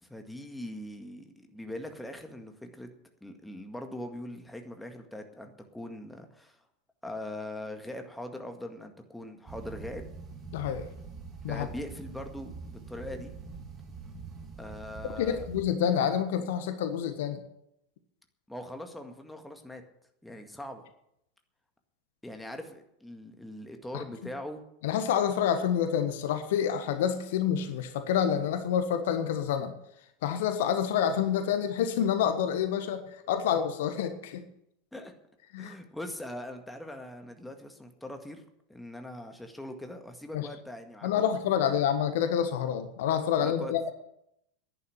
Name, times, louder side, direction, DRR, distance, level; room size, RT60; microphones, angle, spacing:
voice 1, 0.0-2.9 3.2-6.6 7.0-10.1 11.5-13.3 14.6-15.5 18.5-19.8 20.2-20.9 22.2-24.6 34.9-35.1 35.6-38.4 38.7-41.2 41.7-41.8 43.4-43.7, left 1 dB, 5° left, 5 dB, 2.0 m, -41 dB
sound 1, 9.5-15.6, right 5 dB, 30° right, 2.9 m, -44 dB
voice 2, 10.5-10.9 11.4-11.7 15.2-17.4 23.9-24.0 24.8-29.7 30.2-34.4 35.5-35.7 40.3-40.5 41.0-43.9, left 8 dB, 60° left, 9 dB, 1.5 m, -28 dB
11.0 x 10.0 x 9.9 m, 0.80 s
figure-of-eight pair, 85°, 0 cm